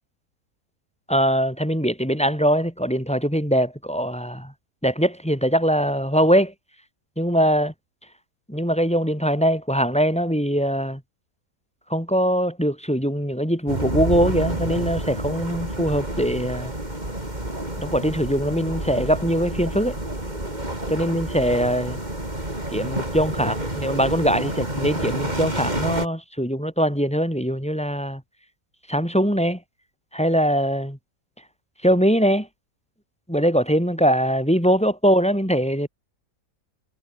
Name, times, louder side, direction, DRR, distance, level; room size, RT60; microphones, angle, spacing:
voice 1, 1.1-4.5 4.8-6.5 7.2-7.7 8.5-11.0 11.9-16.7 17.8-20.0 20.9-22.0 22.7-28.2 28.9-29.6 30.1-31.0 31.8-32.5 33.3-35.9, equal, 5° left, 7.2 m, -22 dB
sound 1, 13.7-26.1, right 1 dB, 25° right, 5.8 m, -29 dB
omnidirectional pair, 1.8 m